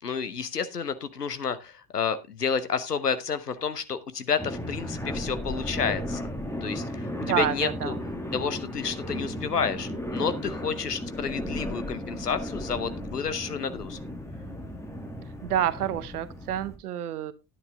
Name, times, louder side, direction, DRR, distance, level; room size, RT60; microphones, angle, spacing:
voice 1, 0.0-6.2 6.6-7.9 8.3-14.0, left 6 dB, 85° left, 0.9 m, -30 dB
sound 1, 4.4-16.7, left 1 dB, 5° left, 2.4 m, -35 dB
voice 2, 7.2-8.0 15.4-17.3, right 11 dB, 75° right, 0.9 m, -28 dB
10.5 x 9.3 x 3.5 m
figure-of-eight pair, 60°, 46 cm